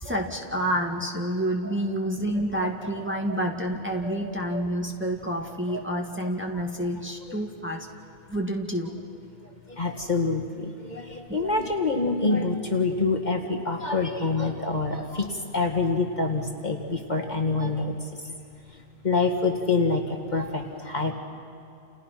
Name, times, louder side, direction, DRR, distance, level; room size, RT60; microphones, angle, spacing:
voice 1, 0.0-7.9 8.3-8.9, right 1 dB, 10° right, 1 dB, 2.1 m, -28 dB
voice 2, 3.1-3.4 4.0-4.2 5.7-5.8 7.3-7.4 9.4-17.9 19.0-21.1, left 3 dB, 35° left, 2 dB, 2.2 m, -26 dB
30.0 x 30.0 x 5.9 m, 2.7 s
omnidirectional pair, 1.3 m